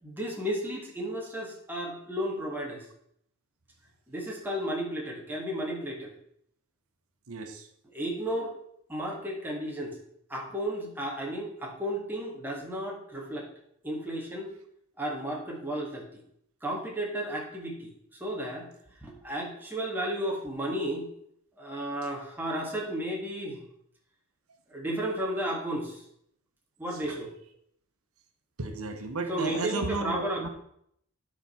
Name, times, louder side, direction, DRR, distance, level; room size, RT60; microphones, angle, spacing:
voice 1, 0.0-2.9 4.1-6.2 7.9-8.6 8.9-10.0 10.3-13.5 13.8-14.5 15.0-16.2 16.6-18.7 19.0-21.1 21.6-23.6 24.7-26.0 26.8-27.3 29.3-30.5, right 1 dB, 10° right, -2 dB, 1.8 m, -33 dB
voice 2, 7.3-7.7 27.1-27.2 28.6-30.5, right 3 dB, 85° right, 6 dB, 1.1 m, -34 dB
10.0 x 5.1 x 5.7 m, 0.71 s
head